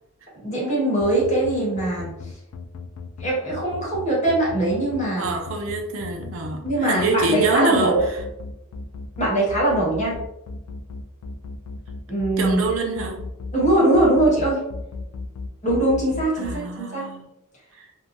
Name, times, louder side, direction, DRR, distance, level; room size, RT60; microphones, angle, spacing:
voice 1, 0.3-2.3 3.2-5.3 6.6-8.0 9.2-10.2 12.1-12.6 13.5-14.6 15.6-17.1, right 1 dB, 35° left, -6 dB, 1.1 m, -21 dB
sound 1, 1.0-16.6, left 4 dB, 85° left, 0.3 m, -35 dB
voice 2, 5.2-8.0 12.4-13.2 16.4-17.3, right 3 dB, 65° right, 3 dB, 0.4 m, -25 dB
2.6 x 2.1 x 2.8 m, 0.89 s
head